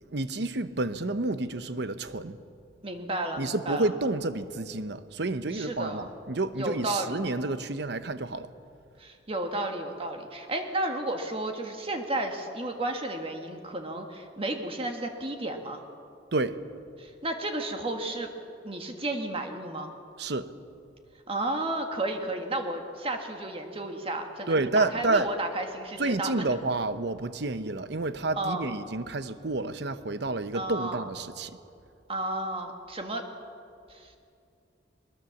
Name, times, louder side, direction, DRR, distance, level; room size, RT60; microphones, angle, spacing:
voice 1, 0.1-2.4 3.4-8.5 16.3-16.6 20.2-20.5 24.5-25.3 26.0-31.5, right 2 dB, 65° right, 12 dB, 0.9 m, -29 dB
voice 2, 2.8-3.9 5.5-6.1 6.6-7.2 9.0-15.8 17.0-18.3 18.6-19.9 21.3-26.4 28.4-28.7 30.5-31.1 32.1-33.2 33.9-34.1, right 1 dB, 30° right, 4 dB, 1.7 m, -32 dB
21.5 x 20.5 x 7.2 m, 2.5 s
head